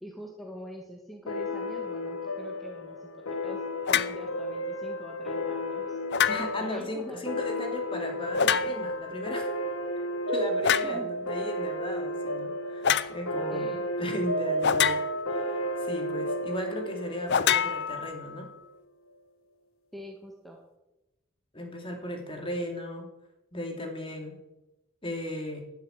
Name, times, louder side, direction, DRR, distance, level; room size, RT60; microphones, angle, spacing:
voice 1, 0.0-3.6 3.9-6.0 6.6-7.2 10.8-11.1 13.5-13.8 19.9-20.6, equal, ahead, -1 dB, 1.8 m, -44 dB
sound 1, 1.3-18.4, equal, 75° left, 1.4 m, -33 dB
sound 2, 3.9-4.2 6.1-6.7 8.3-9.0 10.6-11.0 12.8-13.1 14.6-15.4 17.3-18.4, left 8 dB, 55° left, 0.6 m, -26 dB
voice 2, 6.3-9.5 10.3-15.0 15.3-18.5 21.5-23.1 23.5-24.4 25.0-25.6, left 1 dB, 25° left, 3 dB, 2.7 m, -36 dB
11.5 x 10.0 x 9.0 m, 0.99 s
head